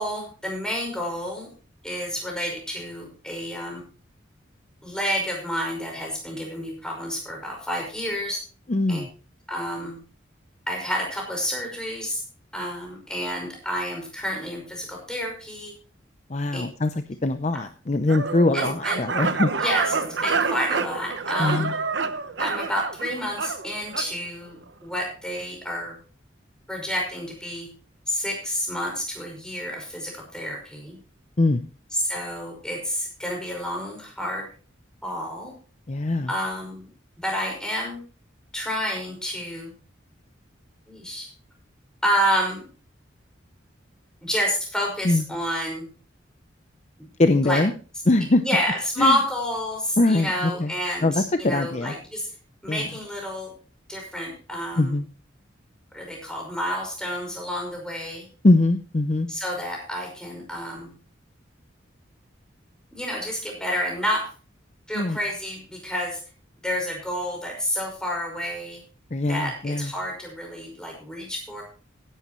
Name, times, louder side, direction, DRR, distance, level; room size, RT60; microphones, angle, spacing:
voice 1, 0.0-1.5 1.8-3.8 4.8-8.4 8.9-9.0 9.5-10.0 10.7-12.2 12.5-15.7 16.5-16.6 17.5-17.6 18.5-19.0 19.6-21.7 22.4-26.0 26.7-27.7 28.1-31.0 31.9-34.5 35.0-35.5 36.3-36.8 37.2-38.0 38.5-39.7 40.9-41.3 42.0-42.6 44.2-45.9 47.4-47.6 48.4-52.3 52.6-53.5 53.9-55.0 55.9-58.2 59.3-60.9 62.9-64.3 64.9-66.2 66.6-68.8 69.2-71.6, equal, 5° left, 0 dB, 5.5 m, -29 dB
voice 2, 8.7-9.1 16.3-16.9 17.2-19.5 21.4-21.7 31.4-31.6 35.9-36.3 45.0-45.2 47.2-47.7 48.1-48.4 49.0-49.2 50.0-50.7 51.0-51.9 52.7-52.9 54.8-55.1 58.4-59.3 64.9-65.2 69.1-69.9, left 2 dB, 35° left, 9 dB, 0.6 m, -22 dB
sound 1, 18.1-24.1, right 4 dB, 65° right, 1.0 m, -28 dB
16.0 x 11.5 x 3.1 m, 0.38 s
head